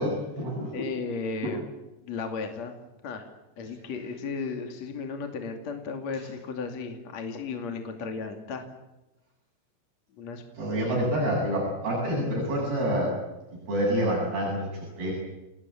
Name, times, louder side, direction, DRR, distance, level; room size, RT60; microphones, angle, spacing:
voice 1, 0.0-0.8 1.4-1.5 10.5-13.1 13.7-15.1, equal, 60° right, -4 dB, 9.6 m, -27 dB
voice 2, 0.7-1.6 2.0-2.7 3.0-3.3 3.6-8.7 10.2-11.1, left 4 dB, 45° left, 4 dB, 3.3 m, -35 dB
29.5 x 20.0 x 8.6 m, 1.0 s
omnidirectional pair, 4.9 m